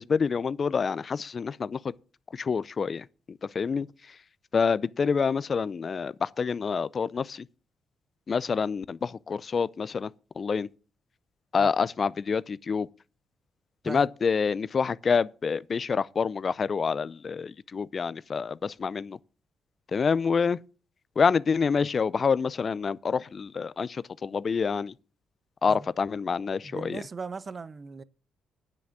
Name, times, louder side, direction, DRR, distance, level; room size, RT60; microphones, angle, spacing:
voice 1, 0.0-1.8 2.3-3.9 4.5-7.5 8.3-10.1 10.4-10.7 11.5-12.9 13.8-19.2 19.9-20.6 21.2-24.9 25.6-27.0, left 5 dB, 40° left, 0.4 m, -27 dB
voice 2, 26.6-28.0, right 4 dB, 35° right, 0.6 m, -38 dB
9.9 x 6.0 x 7.6 m
cardioid pair, 90°, 0 cm